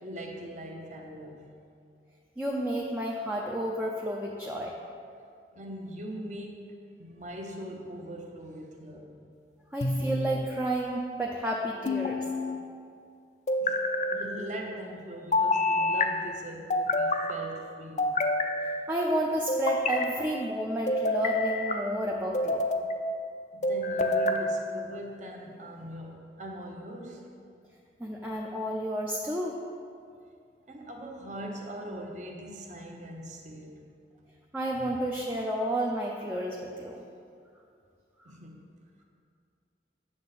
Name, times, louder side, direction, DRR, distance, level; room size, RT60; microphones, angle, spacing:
voice 1, 0.0-1.6 5.5-9.3 13.6-13.8 14.1-18.3 23.5-27.2 30.7-33.9 34.8-35.0 38.2-38.7, equal, 40° right, 1 dB, 0.9 m, -41 dB
voice 2, 2.4-4.7 9.7-12.2 18.9-22.6 28.0-29.6 34.5-37.0, right 1 dB, 10° right, -2 dB, 0.5 m, -31 dB
sound 1, 9.8-10.5 11.8-12.6 13.5-14.2 15.3-16.1 16.7-17.3 18.0-18.8 19.5-20.1 20.9-21.8 22.3-22.9 23.6-24.4, left 2 dB, 40° left, 0.4 m, -27 dB
8.5 x 6.5 x 4.1 m, 2.3 s
head